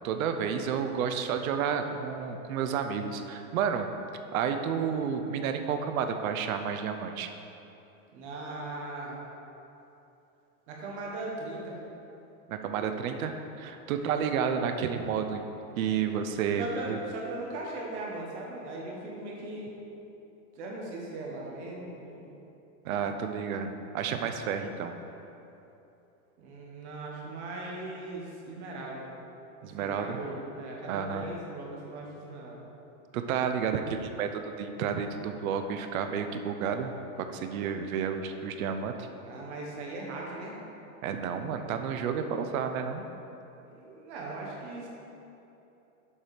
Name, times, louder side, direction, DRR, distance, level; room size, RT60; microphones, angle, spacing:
voice 1, 0.0-3.9 4.3-7.3 12.5-15.4 15.8-17.0 22.8-24.9 29.6-30.2 30.9-31.2 33.1-36.9 37.2-39.1 41.0-43.1, right 7 dB, 70° right, 7 dB, 0.7 m, -31 dB
voice 2, 8.1-9.2 10.7-11.8 13.9-14.2 16.6-19.7 20.5-22.3 26.4-29.1 29.6-32.6 39.2-40.6 43.7-44.9, right 2 dB, 50° right, -2 dB, 1.5 m, -39 dB
7.3 x 4.7 x 5.0 m, 2.9 s
supercardioid pair, 175°, 44 cm